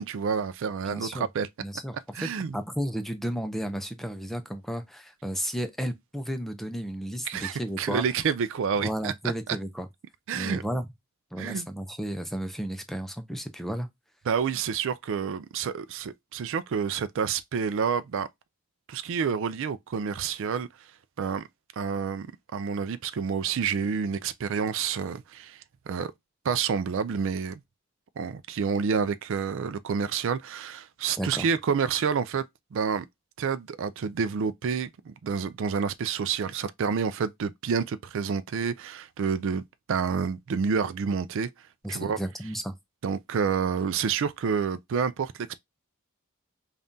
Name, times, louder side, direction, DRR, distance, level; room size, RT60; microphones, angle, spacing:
voice 1, 0.0-1.5 2.1-2.6 7.3-9.1 10.3-10.6 11.4-11.7 14.3-18.3 18.9-20.7 21.2-21.4 21.8-22.3 22.5-26.1 26.4-27.6 28.2-32.4 32.7-33.1 33.4-39.6 39.9-41.5 41.9-42.2 43.0-45.6, right 6 dB, 65° right, 0.4 m, -28 dB
voice 2, 0.9-1.3 1.6-8.0 8.8-9.9 10.3-10.9 11.3-13.9 31.2-31.5 41.8-42.7, equal, ahead, 0.5 m, -33 dB
5.3 x 2.4 x 2.7 m
head